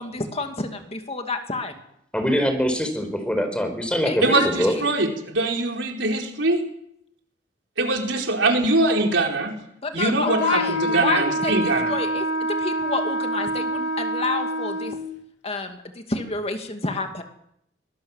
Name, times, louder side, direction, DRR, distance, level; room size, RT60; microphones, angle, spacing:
voice 1, 0.0-1.8 4.0-4.9 9.8-11.6 11.9-15.0 15.4-17.2, left 3 dB, 35° left, 5 dB, 2.5 m, -29 dB
voice 2, 2.1-4.7, equal, 5° left, 7 dB, 4.6 m, -23 dB
voice 3, 4.2-6.6 7.8-9.6 9.9-11.9, right 2 dB, 80° right, 2 dB, 4.5 m, -22 dB
Wind instrument woodwind instrument, 10.2-15.1, right 1 dB, 75° left, 3.4 m, -26 dB
24.0 x 20.0 x 7.4 m, 0.74 s
head